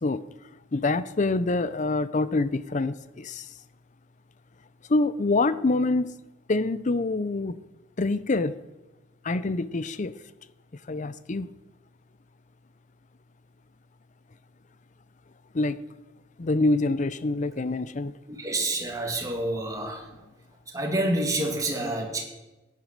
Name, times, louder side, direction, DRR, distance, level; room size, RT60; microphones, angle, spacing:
voice 1, 0.7-3.5 4.9-6.1 6.5-7.6 8.0-8.5 9.2-10.2 10.9-11.6 15.5-15.8 16.4-18.1, left 2 dB, 40° left, 16 dB, 0.5 m, -26 dB
voice 2, 18.3-20.2 20.7-22.2, right 1 dB, 15° right, 0 dB, 2.1 m, -28 dB
16.0 x 9.4 x 6.5 m, 1.1 s
head